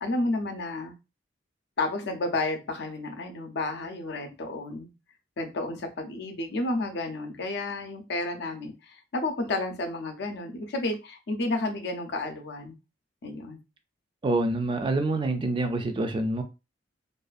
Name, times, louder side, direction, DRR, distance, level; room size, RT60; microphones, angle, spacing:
voice 1, 0.0-0.9 1.8-4.9 5.4-12.8 13.2-13.6, left 2 dB, 65° left, 0.5 m, -31 dB
voice 2, 14.2-16.4, right 2 dB, 30° right, 0.3 m, -26 dB
2.5 x 2.3 x 2.4 m
head